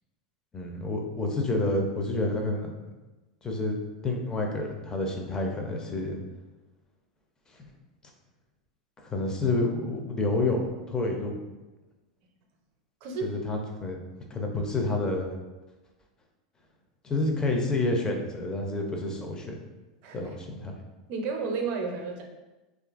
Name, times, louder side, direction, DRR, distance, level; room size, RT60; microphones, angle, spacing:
voice 1, 0.5-2.7 3.4-3.8 4.0-6.2 9.0-10.6 10.9-11.4 13.2-14.0 14.3-15.3 17.0-19.6 20.1-20.7, left 2 dB, 20° left, 1 dB, 0.5 m, -29 dB
voice 2, 21.1-22.2, right 4 dB, 50° right, 2 dB, 0.5 m, -31 dB
2.7 x 2.4 x 2.4 m, 1.1 s
hypercardioid pair, 110°, 4 cm